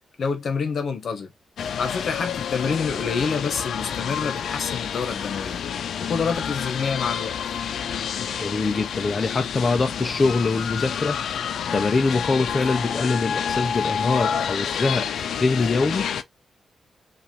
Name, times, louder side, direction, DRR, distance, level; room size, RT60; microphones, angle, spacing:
voice 1, 0.2-1.3 1.8-5.6 6.0-7.3, left 5 dB, 55° left, 1.2 m, -27 dB
sound 1, 1.6-16.2, left 8 dB, 90° left, 0.5 m, -29 dB
voice 2, 8.4-11.2 11.7-15.1 15.3-16.1, left 3 dB, 30° left, 0.5 m, -23 dB
5.8 x 2.5 x 3.3 m
wide cardioid pair, 175°, 0 cm